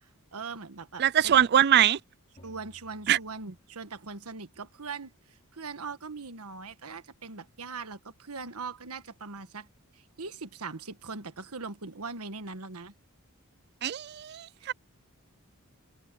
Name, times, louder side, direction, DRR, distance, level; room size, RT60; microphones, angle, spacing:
voice 1, 0.0-1.3 2.4-9.7 9.9-12.9 14.6-14.7, right 4 dB, 85° right, 1.4 m, -41 dB
voice 2, 1.0-2.0 3.1-3.2 13.8-14.7, right 10 dB, 50° right, 0.4 m, -23 dB
sound 1, 2.4-4.3, equal, 30° left, 3.7 m, -58 dB
head